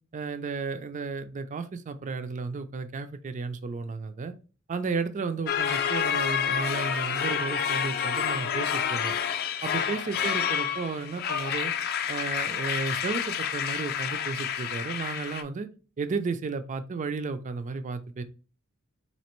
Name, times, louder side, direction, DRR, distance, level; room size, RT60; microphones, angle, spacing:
voice 1, 0.1-4.3 4.7-9.1 9.6-11.7 12.1-15.7 16.0-18.2, right 4 dB, 35° right, 10 dB, 0.4 m, -33 dB
sound 1, 5.5-15.4, left 8 dB, 50° left, 0.4 m, -29 dB
4.2 x 2.8 x 3.0 m, 0.35 s
head